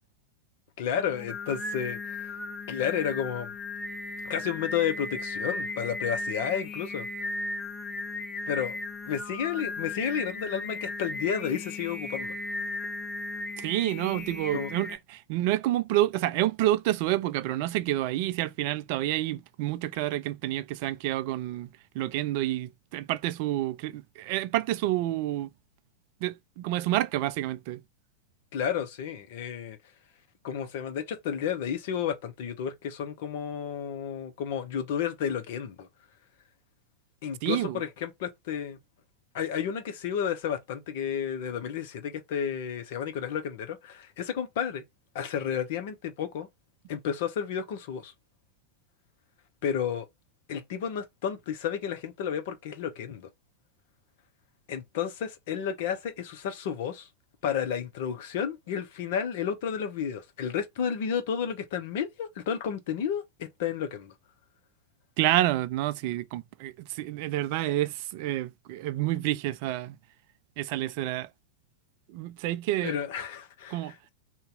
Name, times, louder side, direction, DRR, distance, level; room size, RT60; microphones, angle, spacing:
voice 1, 0.8-2.3 2.7-3.5 4.2-7.1 8.5-8.8 9.1-12.3 14.5-14.7 28.5-29.8 30.4-35.9 37.2-38.8 39.3-44.8 45.1-46.5 46.9-48.1 49.6-50.1 50.5-53.3 54.7-57.1 57.4-64.1 72.8-73.8, left 8 dB, 50° left, 0.8 m, -31 dB
Singing, 0.9-15.0, left 2 dB, 20° left, 0.5 m, -36 dB
voice 2, 13.6-21.7 21.9-25.5 26.2-27.8 37.4-37.8 65.2-70.0 70.6-71.3 72.1-73.0 73.7-73.9, right 14 dB, 45° right, 0.3 m, -29 dB
2.8 x 2.2 x 3.7 m
figure-of-eight pair, 90°, 0 cm